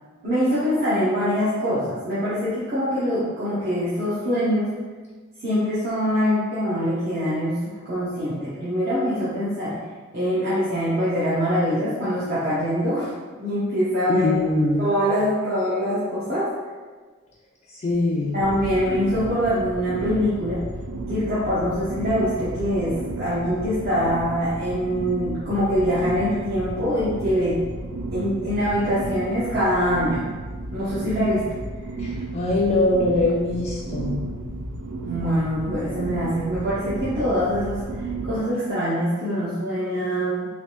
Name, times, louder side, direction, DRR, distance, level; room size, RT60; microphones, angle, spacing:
voice 1, 0.2-4.7 5.4-9.8 10.1-13.1 13.4-14.3 14.8-16.5 18.3-20.6 21.1-27.6 28.1-30.2 30.7-31.6 35.1-40.5, equal, 50° right, -11 dB, 0.8 m, -24 dB
voice 2, 14.1-14.8 17.8-18.4 32.0-34.3, left 2 dB, 35° left, -3 dB, 0.3 m, -22 dB
sound 1, 18.4-38.4, right 2 dB, 80° right, 0.4 m, -33 dB
3.3 x 3.0 x 2.9 m, 1.4 s
head